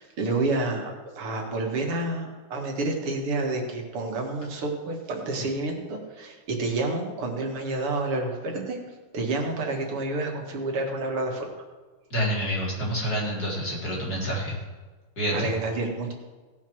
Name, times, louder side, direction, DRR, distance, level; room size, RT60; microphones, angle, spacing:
voice 1, 0.0-8.8 9.1-11.5 15.3-16.1, right 2 dB, 85° right, 1 dB, 2.7 m, -29 dB
voice 2, 12.1-14.6 15.2-15.5, equal, 45° left, -5 dB, 4.1 m, -28 dB
17.5 x 5.8 x 6.1 m, 1.3 s
omnidirectional pair, 2.4 m